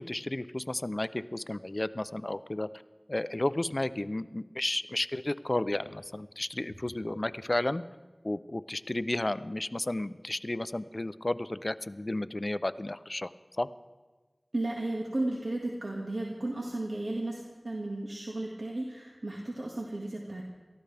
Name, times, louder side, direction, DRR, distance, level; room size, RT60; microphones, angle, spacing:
voice 1, 0.0-2.7 3.1-7.8 8.2-13.3 13.6-13.7, left 1 dB, 45° left, 13 dB, 0.5 m, -32 dB
voice 2, 14.5-20.4, right 2 dB, 70° right, -2 dB, 1.8 m, -34 dB
28.5 x 14.0 x 3.4 m, 1.3 s
wide cardioid pair, 50°, 0 cm